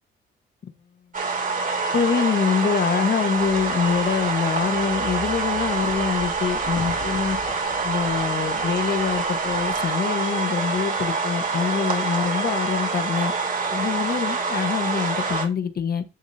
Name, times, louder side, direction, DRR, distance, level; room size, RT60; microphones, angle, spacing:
sound 1, 1.1-15.5, right 4 dB, 45° right, 3.0 m, -26 dB
voice 1, 1.9-7.4 7.8-13.3 13.7-16.0, left 6 dB, 50° left, 1.5 m, -25 dB
sound 2, 3.4-9.9, left 4 dB, 65° left, 2.8 m, -41 dB
11.0 x 7.4 x 2.9 m
cardioid pair, 90°, 20 cm